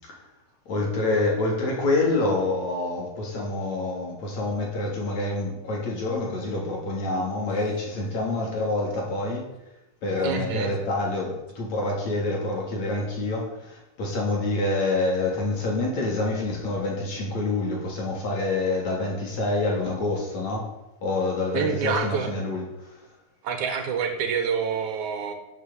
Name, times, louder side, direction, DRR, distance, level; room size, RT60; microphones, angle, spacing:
voice 1, 0.7-9.4 10.0-20.7 21.0-23.0, left 2 dB, 60° left, -2 dB, 4.8 m, -27 dB
voice 2, 10.2-10.7 21.5-22.3 23.4-25.4, right 6 dB, 70° right, 6 dB, 2.9 m, -27 dB
12.0 x 8.8 x 8.2 m, 0.96 s
omnidirectional pair, 3.5 m